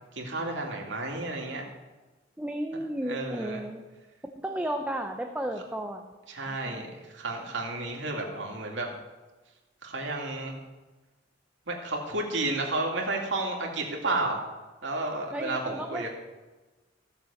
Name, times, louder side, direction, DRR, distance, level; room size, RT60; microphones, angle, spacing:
voice 1, 0.1-1.7 3.1-3.6 6.3-8.9 9.8-10.6 11.7-14.4 14.8-16.1, right 2 dB, 75° right, 0 dB, 2.6 m, -32 dB
voice 2, 2.4-3.8 4.4-6.1 6.5-6.9 15.3-16.1, right 1 dB, 10° right, 4 dB, 0.7 m, -33 dB
15.5 x 6.8 x 7.2 m, 1.2 s
head